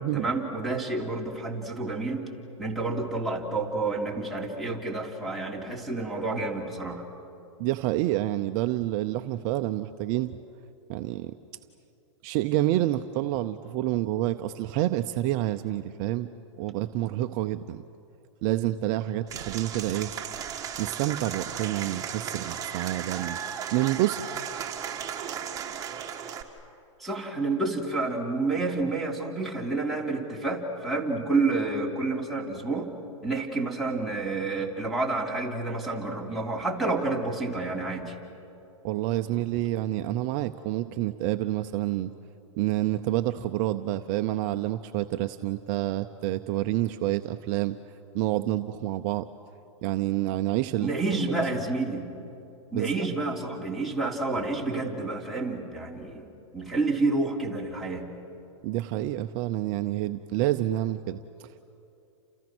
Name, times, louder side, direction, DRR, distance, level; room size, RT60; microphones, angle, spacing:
voice 1, 0.1-2.2 2.6-7.0 27.0-32.9 33.2-38.1 50.8-52.1 52.7-56.3 56.5-58.0, right 3 dB, ahead, 1 dB, 3.4 m, -29 dB
voice 2, 7.6-10.3 10.9-11.3 12.2-16.3 16.6-17.8 18.4-20.1 20.8-23.4 23.7-24.2 38.8-42.1 42.6-47.8 48.1-49.3 49.8-50.9 52.7-53.1 58.6-61.7, right 15 dB, 40° right, 9 dB, 0.7 m, -28 dB
Applause / Crowd, 19.3-26.4, right 8 dB, 20° right, 2.2 m, -35 dB
29.5 x 28.5 x 6.2 m, 2.8 s
hypercardioid pair, 145°, 16 cm